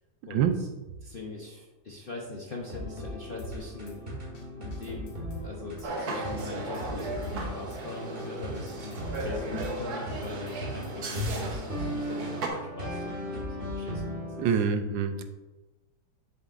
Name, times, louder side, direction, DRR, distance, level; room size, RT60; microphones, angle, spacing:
voice 1, 0.3-0.7 1.0-4.0 4.5-5.1 5.4-9.0 9.2-14.5, left 2 dB, 50° left, -2 dB, 0.6 m, -41 dB
sound 1, 2.6-14.4, equal, 30° right, 1.9 m, -37 dB
Drum kit / Snare drum, 3.4-4.0 4.3-4.4 4.7-5.9 6.3-6.5 6.7-7.8 8.2-8.3 8.5-9.7 10.1-11.0, equal, 90° left, 2.2 m, -45 dB
sound 2, 5.8-12.5, right 3 dB, 60° right, 1.4 m, -37 dB
voice 2, 14.4-15.2, right 7 dB, 80° right, 7 dB, 1.3 m, -25 dB
7.4 x 7.1 x 2.5 m, 1.1 s
omnidirectional pair, 2.0 m